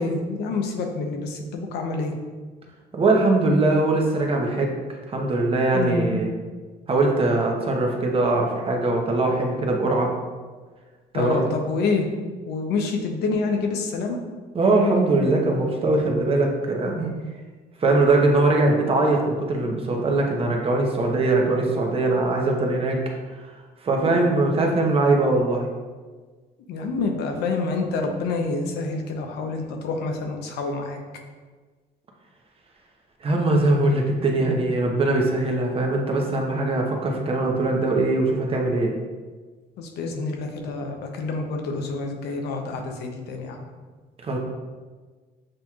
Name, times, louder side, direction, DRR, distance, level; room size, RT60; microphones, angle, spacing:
voice 1, 0.0-2.1 5.7-6.3 11.1-12.1 12.5-14.2 24.1-24.2 26.7-31.0 39.8-43.6, left 3 dB, 75° left, 3 dB, 0.7 m, -27 dB
voice 2, 2.9-4.8 5.1-6.3 6.9-10.1 11.1-11.5 14.5-17.1 17.8-23.0 23.8-25.7 33.2-38.9 44.2-44.4, right 2 dB, 35° right, 1 dB, 0.8 m, -21 dB
7.5 x 2.9 x 2.3 m, 1.4 s
cardioid pair, 110°, 17 cm